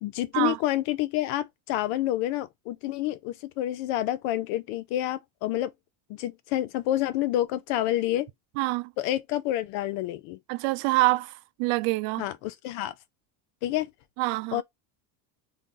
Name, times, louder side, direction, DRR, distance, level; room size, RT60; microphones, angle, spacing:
voice 1, 0.0-5.7 6.1-8.3 9.0-10.4 12.2-12.9 13.6-13.9 14.5-14.6, left 14 dB, 80° left, 0.7 m, -28 dB
voice 2, 8.6-8.9 10.5-12.3 14.2-14.6, right 22 dB, 85° right, 0.6 m, -26 dB
3.1 x 2.6 x 3.8 m
cardioid pair, 160°, 50 cm